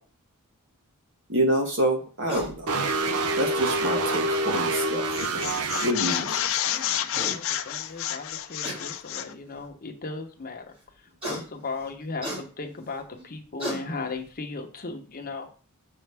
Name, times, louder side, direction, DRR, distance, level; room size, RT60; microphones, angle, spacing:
voice 1, 1.3-2.7 3.4-6.4, right 1 dB, 60° right, 1 dB, 1.9 m, -27 dB
sound 1, 2.3-2.6 4.0-4.1 5.7-5.8 6.1-6.3 6.8-6.9 7.1-7.4 8.6-8.8 9.6-9.7 11.2-11.4 12.2-12.4 13.2-13.3 13.6-13.8, right 1 dB, 25° right, 2.2 m, -33 dB
sound 2, 2.7-5.9, right 2 dB, 90° right, 0.7 m, -26 dB
sound 3, 4.6-4.8 5.1-9.3, left 11 dB, 65° left, 0.6 m, -30 dB
voice 2, 6.1-10.7 11.2-15.5, left 3 dB, 40° left, 3 dB, 0.9 m, -37 dB
6.6 x 5.5 x 3.4 m, 0.38 s
head